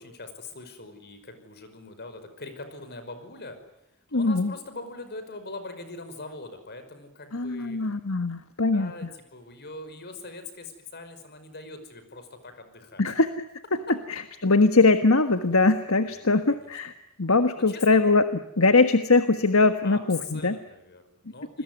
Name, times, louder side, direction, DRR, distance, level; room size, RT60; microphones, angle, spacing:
voice 1, 0.0-3.6 4.1-7.9 8.7-13.1 16.1-16.2 16.5-16.7 17.5-18.0 19.8-21.6, left 3 dB, 50° left, 9 dB, 5.6 m, -42 dB
voice 2, 4.1-4.5 7.3-8.9 13.0-13.3 14.1-16.9 17.2-18.2 18.6-20.6, left 3 dB, 70° left, 9 dB, 1.5 m, -21 dB
29.0 x 21.5 x 9.5 m, 0.82 s
head